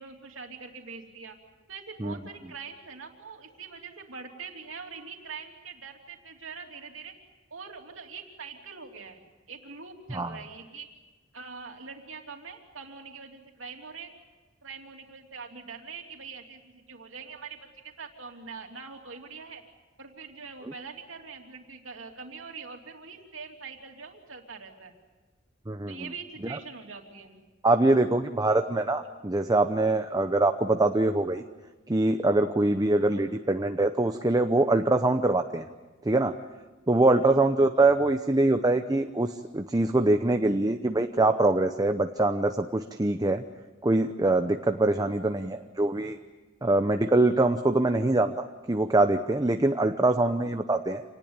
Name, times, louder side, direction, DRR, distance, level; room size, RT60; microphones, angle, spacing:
voice 1, 0.0-1.4 1.7-7.1 7.5-10.9 11.3-14.1 14.6-19.6 20.0-24.9 25.9-27.4 33.0-33.2 37.2-37.4 37.8-37.9 45.0-45.2 50.0-50.3, right 5 dB, 75° right, 3 dB, 3.1 m, -43 dB
voice 2, 25.7-26.0 27.6-31.4 31.9-35.7 36.0-36.3 36.9-43.4 43.8-46.2 46.6-51.0, right 2 dB, 20° right, 7 dB, 0.8 m, -24 dB
27.0 x 19.0 x 8.9 m, 1.3 s
head